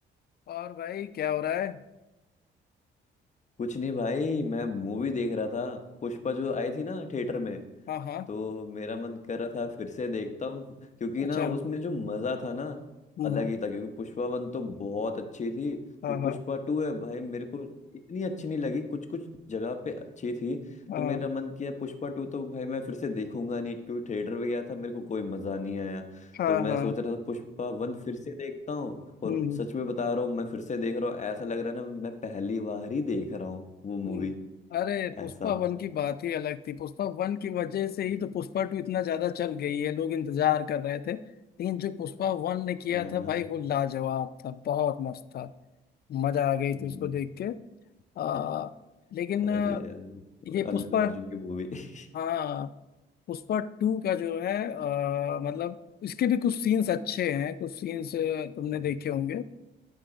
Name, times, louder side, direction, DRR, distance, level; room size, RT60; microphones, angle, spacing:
voice 1, 0.5-1.8 7.9-8.3 11.2-11.6 13.2-13.5 16.0-16.4 20.9-21.2 26.3-26.9 29.2-29.6 34.0-34.3 34.7-41.2 41.6-45.5 46.1-47.6 48.2-48.7 49.1-49.9 50.5-51.2 52.1-52.7 53.3-59.4, left 9 dB, 50° left, 15 dB, 0.4 m, -30 dB
voice 2, 3.6-7.6 8.3-10.7 11.0-12.8 13.2-15.8 16.1-17.7 18.1-20.6 21.0-29.0 29.2-34.3 35.2-35.5 42.9-43.4 46.7-47.1 49.5-50.2 50.5-52.1, left 3 dB, 35° left, 6 dB, 1.0 m, -33 dB
11.5 x 3.8 x 5.1 m, 1.0 s
cardioid pair, 90°, 20 cm